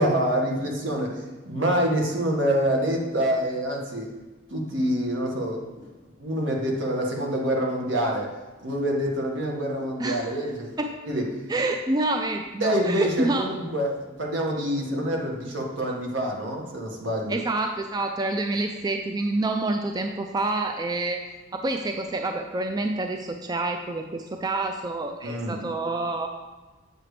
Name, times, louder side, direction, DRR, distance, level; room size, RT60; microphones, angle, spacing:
voice 1, 0.0-4.1 4.5-5.6 6.2-8.3 8.6-10.7 11.1-11.2 12.6-17.4 25.2-25.6, right 1 dB, 70° right, 0 dB, 1.7 m, -26 dB
voice 2, 10.0-10.5 10.8-11.0 11.5-13.5 17.3-21.2 21.5-26.3, right 2 dB, 20° right, 4 dB, 0.4 m, -27 dB
8.2 x 7.3 x 3.3 m, 1.3 s
head